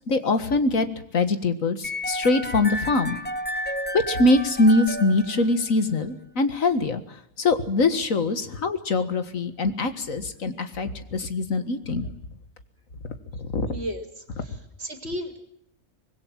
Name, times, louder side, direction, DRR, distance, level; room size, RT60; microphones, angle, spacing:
voice 1, 0.1-0.9 1.1-3.2 3.9-7.0 7.4-12.1 13.5-13.7, left 2 dB, 80° left, 10 dB, 2.1 m, -23 dB
sound 1, 1.8-5.9, equal, 10° left, 0.9 m, -32 dB
voice 2, 13.7-15.4, equal, 50° right, 7 dB, 3.1 m, -35 dB
25.0 x 20.5 x 7.4 m, 0.72 s
omnidirectional pair, 1.4 m